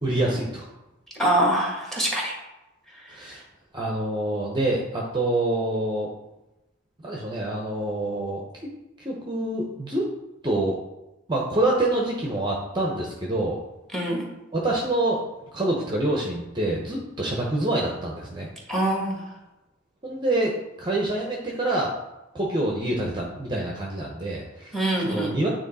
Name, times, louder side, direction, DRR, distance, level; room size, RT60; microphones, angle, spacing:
voice 1, 0.0-0.7 3.1-3.4 3.7-6.1 7.0-8.4 9.0-10.1 10.4-10.8 11.3-13.6 14.5-15.2 15.5-18.5 20.0-21.9 22.3-25.5, right 1 dB, 25° right, -2 dB, 0.8 m, -26 dB
voice 2, 1.2-2.4 13.9-14.2 18.7-19.2 24.7-25.4, right 1 dB, ahead, -1 dB, 1.5 m, -24 dB
9.0 x 3.1 x 4.1 m, 0.98 s
head